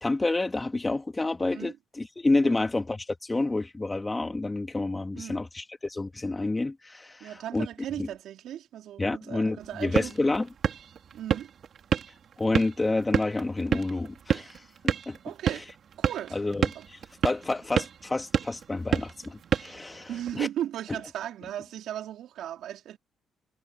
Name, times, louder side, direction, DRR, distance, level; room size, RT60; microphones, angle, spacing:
voice 1, 0.0-7.7 8.0-8.1 9.0-10.5 12.4-15.2 16.3-17.0 17.2-20.5, left 2 dB, 20° left, 2.5 m, -29 dB
voice 2, 7.2-10.1 11.1-11.5 15.2-15.7 16.0-16.4 16.8-16.9 20.1-23.0, right 11 dB, 75° right, 3.6 m, -36 dB
sound 1, 9.6-20.4, right 8 dB, 60° right, 3.4 m, -31 dB
cardioid pair, 85°, 0 cm